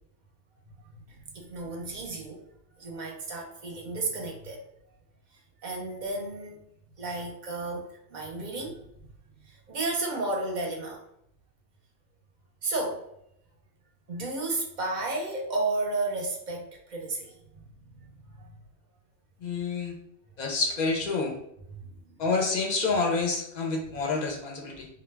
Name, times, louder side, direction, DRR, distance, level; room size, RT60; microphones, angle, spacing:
voice 1, 1.1-2.4 2.8-4.6 5.6-6.6 7.0-8.8 9.4-11.0 12.6-13.0 14.1-17.3 17.7-18.1 18.4-18.5 21.7-21.8, right 2 dB, 50° right, 0 dB, 0.6 m, -33 dB
voice 2, 19.4-19.9 20.4-21.3 22.2-24.9, left 4 dB, 55° left, 1 dB, 0.5 m, -28 dB
2.3 x 2.1 x 3.2 m, 0.75 s
omnidirectional pair, 1.2 m